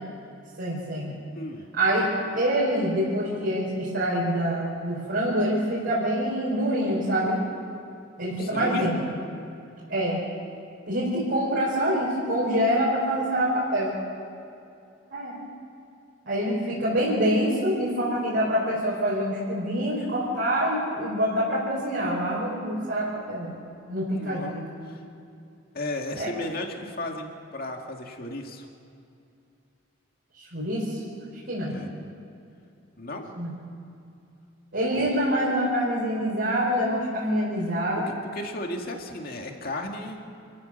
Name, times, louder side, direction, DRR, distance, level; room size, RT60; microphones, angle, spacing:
voice 1, 0.6-1.1 1.7-2.0 2.3-7.4 8.2-9.0 9.9-10.2 10.9-13.9 15.1-15.3 16.2-23.6 23.9-24.6 26.1-26.3 30.4-31.0 31.5-31.7 33.4-33.5 34.7-38.1, equal, 60° right, -7 dB, 4.8 m, -25 dB
voice 2, 1.3-1.7 8.3-8.9 24.1-24.6 24.8-25.0 25.7-28.7 31.7-31.9 33.0-33.2 34.9-35.1 38.1-40.2, left 1 dB, 50° left, 2 dB, 2.2 m, -35 dB
28.5 x 14.5 x 6.6 m, 2.6 s
head